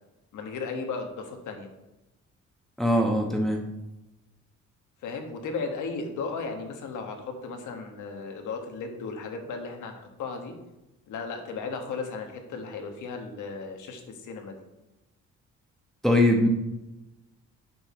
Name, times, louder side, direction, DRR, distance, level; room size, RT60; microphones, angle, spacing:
voice 1, 0.3-1.7 5.0-10.5 11.1-14.6, left 4 dB, 80° left, 4 dB, 1.5 m, -35 dB
voice 2, 2.8-3.6 16.0-16.5, left 1 dB, ahead, 1 dB, 1.0 m, -21 dB
7.8 x 5.7 x 4.3 m, 0.99 s
cardioid pair, 90°, 30 cm